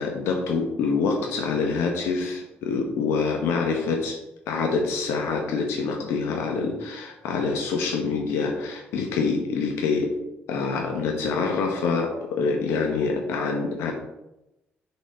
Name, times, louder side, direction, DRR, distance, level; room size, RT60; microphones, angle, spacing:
voice 1, 0.0-4.2 4.5-10.1 10.5-13.9, left 4 dB, 90° left, 1 dB, 1.0 m, -26 dB
6.7 x 4.2 x 5.3 m, 0.92 s
cardioid pair, 90°, 4 cm